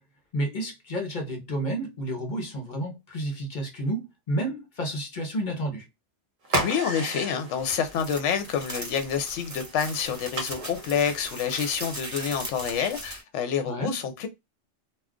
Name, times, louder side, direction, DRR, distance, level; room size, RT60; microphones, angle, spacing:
voice 1, 0.3-5.9 13.7-13.9, right 1 dB, 45° left, 0.7 m, -30 dB
sound 1, 6.4-11.6, right 1 dB, 50° right, 0.8 m, -35 dB
voice 2, 6.6-14.3, left 7 dB, 75° left, 0.9 m, -28 dB
sound 2, 7.6-13.2, right 1 dB, 15° right, 1.0 m, -39 dB
2.3 x 2.3 x 3.5 m
omnidirectional pair, 1.3 m